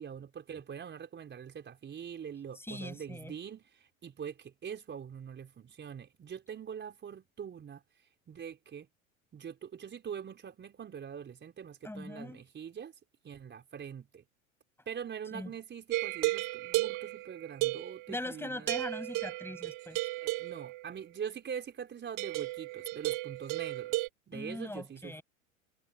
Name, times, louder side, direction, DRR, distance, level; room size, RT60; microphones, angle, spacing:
voice 1, 0.0-7.8 8.3-8.9 9.3-13.0 13.2-14.2 14.8-18.8 20.2-25.2, right 8 dB, 25° right, 5.0 m, -43 dB
voice 2, 2.7-3.3 11.8-12.4 15.3-15.5 18.1-20.1 24.3-25.2, left 1 dB, 5° left, 7.3 m, -41 dB
sound 1, 15.9-18.3 18.7-21.0 22.2-24.1, right 21 dB, 45° right, 1.7 m, -34 dB
hypercardioid pair, 95°, 41 cm